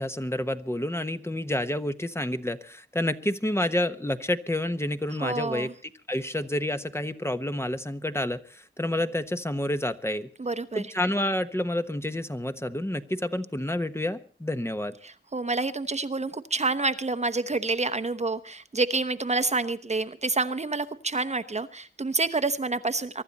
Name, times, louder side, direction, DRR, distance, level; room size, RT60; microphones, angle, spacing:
voice 1, 0.0-5.7 6.1-10.3 10.7-14.9, left 1 dB, 10° left, 9 dB, 1.1 m, -29 dB
voice 2, 5.2-5.7 10.4-10.8 15.0-23.2, right 3 dB, 35° right, 10 dB, 1.0 m, -28 dB
23.5 x 12.0 x 4.2 m, 0.40 s
wide cardioid pair, 75°, 20 cm